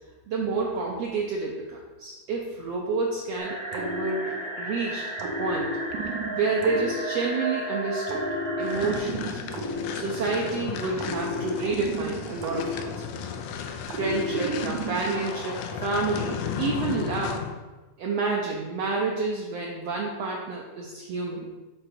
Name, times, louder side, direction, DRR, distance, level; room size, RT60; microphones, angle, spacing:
voice 1, 0.3-5.8 6.3-8.2 8.6-9.4 9.9-13.3 14.0-17.4 18.0-21.5, right 3 dB, 70° right, -2 dB, 1.6 m, -29 dB
sound 1, 3.4-9.0, right 1 dB, 35° right, 0.6 m, -33 dB
sound 2, 3.7-4.7 5.2-7.6 8.1-10.5 11.0-13.4 13.9-15.4, right 1 dB, 90° right, 2.4 m, -33 dB
sound 3, 8.6-17.6, left 7 dB, 80° left, 2.0 m, -34 dB
6.8 x 3.8 x 6.0 m, 1.2 s
omnidirectional pair, 3.6 m